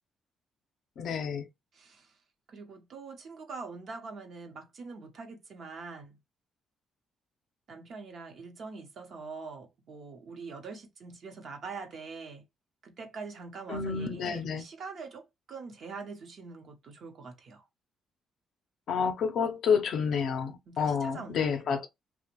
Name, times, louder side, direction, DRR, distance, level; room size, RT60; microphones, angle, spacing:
voice 1, 1.0-1.5 13.7-14.6 18.9-21.9, left 6 dB, 70° left, 0.5 m, -29 dB
voice 2, 1.7-2.2 2.5-6.2 7.7-12.4 12.8-17.6 20.7-21.7, right 4 dB, 60° right, 0.7 m, -44 dB
2.4 x 2.1 x 2.9 m
cardioid pair, 90°, 0 cm